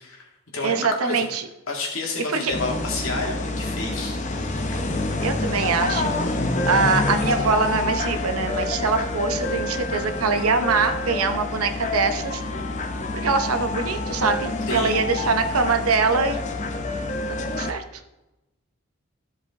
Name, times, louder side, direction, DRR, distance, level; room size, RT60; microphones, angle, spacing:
voice 1, 0.0-1.3 1.7-4.2 4.7-4.8 14.7-15.0, left 2 dB, 65° left, -1 dB, 1.9 m, -30 dB
voice 2, 0.6-1.4 2.4-2.5 5.2-6.1 6.7-12.4 13.1-16.4 17.6-17.8, right 4 dB, 75° right, 8 dB, 0.8 m, -23 dB
sound 1, 2.5-17.7, left 2 dB, 30° left, 0.6 m, -27 dB
13.0 x 4.9 x 3.6 m, 0.98 s
head